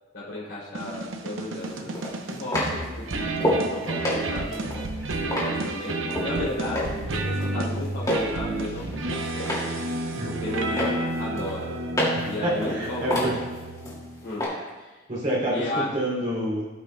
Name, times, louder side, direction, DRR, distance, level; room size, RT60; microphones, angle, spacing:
voice 1, 0.1-2.0 2.3-4.8 5.2-9.7 10.2-11.8 12.2-13.4 14.2-14.5 14.8-15.0 15.5-15.9, left 2 dB, 65° left, -7 dB, 2.8 m, -34 dB
sound 1, 0.7-14.2, right 2 dB, 90° right, 0.7 m, -31 dB
sound 2, 0.9-1.0 1.9-3.7 4.0-6.3 6.7-7.1 7.4-8.3 8.7-9.7 10.1-10.5 10.8-12.3 12.6-14.0 14.4-14.5, left 1 dB, 20° left, 2.2 m, -28 dB
voice 2, 12.1-13.3 15.1-16.7, right 1 dB, 40° right, -6 dB, 2.7 m, -28 dB
17.0 x 5.6 x 2.2 m, 1.2 s
head